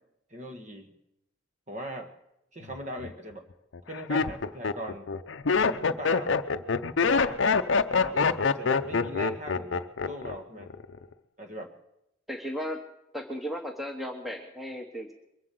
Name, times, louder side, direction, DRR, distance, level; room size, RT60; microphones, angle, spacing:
voice 1, 0.3-0.9 1.7-2.1 2.5-3.4 3.9-5.1 5.6-6.4 7.0-7.4 7.9-10.7 11.4-11.7, equal, 35° right, 5 dB, 1.6 m, -40 dB
Laughter, 2.7-3.1 3.7-10.3 10.6-11.1, left 5 dB, 70° left, 0.6 m, -25 dB
voice 2, 12.3-12.8 13.1-15.1, equal, ahead, 3 dB, 1.1 m, -35 dB
22.5 x 7.7 x 7.7 m, 0.83 s
head